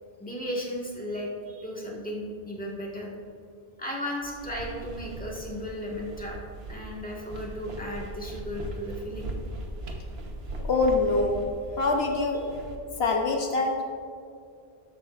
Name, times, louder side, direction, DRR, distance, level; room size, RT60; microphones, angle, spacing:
voice 1, 0.2-3.1 3.8-6.4 6.7-9.3, equal, 10° left, -3 dB, 1.6 m, -35 dB
sound 1, 4.2-12.7, right 1 dB, 70° right, 1.3 m, -39 dB
voice 2, 10.6-11.5 11.8-12.5 13.0-13.8, left 3 dB, 75° left, 2 dB, 1.1 m, -24 dB
13.0 x 12.0 x 2.5 m, 2.4 s
omnidirectional pair, 1.1 m